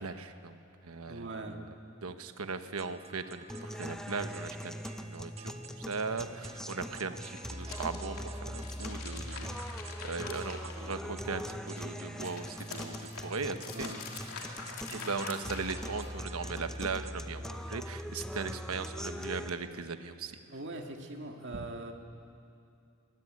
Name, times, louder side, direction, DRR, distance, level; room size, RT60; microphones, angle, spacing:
voice 1, 0.0-1.6 2.0-5.5 5.9-13.9 14.9-20.4 21.5-21.6, right 4 dB, 75° right, 9 dB, 1.1 m, -38 dB
voice 2, 1.0-1.6 13.7-14.0 20.5-21.9, right 2 dB, 55° right, 3 dB, 2.0 m, -41 dB
sound 1, 2.8-17.2, right 5 dB, 30° right, 0.9 m, -53 dB
sound 2, 3.5-19.5, equal, ahead, 0.6 m, -41 dB
sound 3, 7.2-11.3 11.6-16.3, left 5 dB, 75° left, 2.8 m, -45 dB
24.0 x 17.0 x 9.6 m, 2.5 s
head